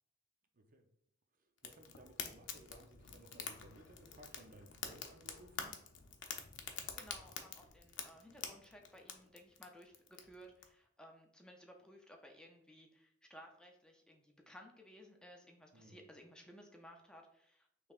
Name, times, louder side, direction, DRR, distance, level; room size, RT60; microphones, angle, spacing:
voice 1, 0.5-0.9 1.6-5.8 15.7-16.0, right 1 dB, 45° right, 5 dB, 0.6 m, -59 dB
Fire, 1.6-10.6, left 7 dB, 70° left, 0.6 m, -48 dB
voice 2, 7.0-17.9, equal, 5° left, 1 dB, 0.4 m, -58 dB
5.2 x 3.2 x 2.4 m, 0.71 s
head